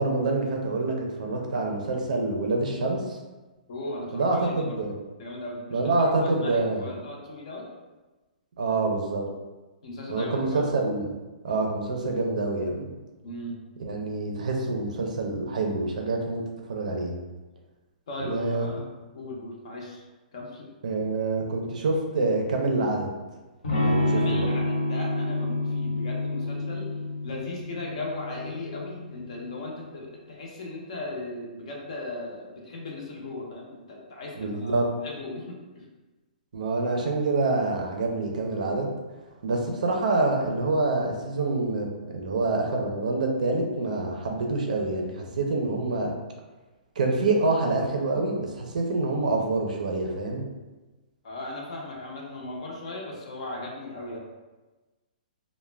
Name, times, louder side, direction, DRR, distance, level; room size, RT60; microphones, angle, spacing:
voice 1, 0.0-3.2 4.1-5.0 5.7-6.9 8.6-9.3 10.1-11.1 11.4-12.9 13.8-16.4 16.7-17.1 18.2-18.7 20.8-23.1 23.8-24.5 34.4-34.9 36.5-38.9 39.4-41.9 42.1-46.1 47.0-50.4, right 3 dB, 55° right, 1 dB, 0.5 m, -26 dB
voice 2, 3.7-4.8 5.2-6.1 6.4-7.6 9.8-10.6 13.2-13.6 18.1-18.8 19.1-20.0 20.3-20.7 24.0-26.9 27.2-35.8 51.2-54.2, left 2 dB, 40° left, -2 dB, 0.5 m, -37 dB
Electric guitar / Strum, 23.6-29.4, left 2 dB, 70° left, 1.0 m, -28 dB
2.3 x 2.1 x 3.1 m, 1.2 s
hypercardioid pair, 180°, 5 cm